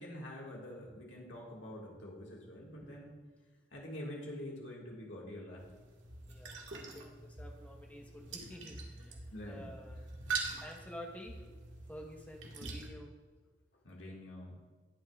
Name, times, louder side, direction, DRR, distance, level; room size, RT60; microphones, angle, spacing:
voice 1, 0.0-3.1 3.7-5.7 9.3-9.7 13.8-14.6, left 1 dB, 85° left, -2 dB, 1.8 m, -46 dB
sound 1, 5.6-12.9, right 4 dB, 85° right, 1.6 m, -44 dB
voice 2, 6.3-10.1 10.4-11.6 11.9-13.1 14.1-14.2, equal, 10° left, 1 dB, 1.0 m, -50 dB
19.0 x 6.4 x 2.4 m, 1.3 s
head